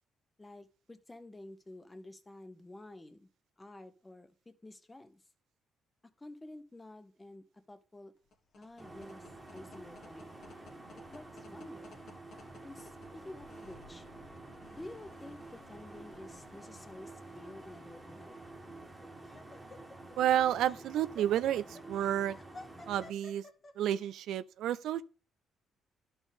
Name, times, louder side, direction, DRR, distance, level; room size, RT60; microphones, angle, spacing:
voice 1, 0.4-3.3 3.6-5.2 6.2-8.1 8.6-10.3 10.9-12.0 12.6-14.1 14.7-18.3, left 1 dB, 15° left, 1.0 m, -50 dB
sound 1, 8.2-18.9, left 3 dB, 60° left, 1.6 m, -59 dB
sound 2, 8.8-23.1, right 2 dB, 15° right, 1.4 m, -50 dB
Laughter, 18.6-24.1, left 2 dB, 30° left, 1.3 m, -53 dB
voice 2, 20.2-22.4 22.9-23.4 23.8-25.0, right 11 dB, 80° right, 0.3 m, -30 dB
11.5 x 4.4 x 3.6 m
cardioid pair, 90°, 0 cm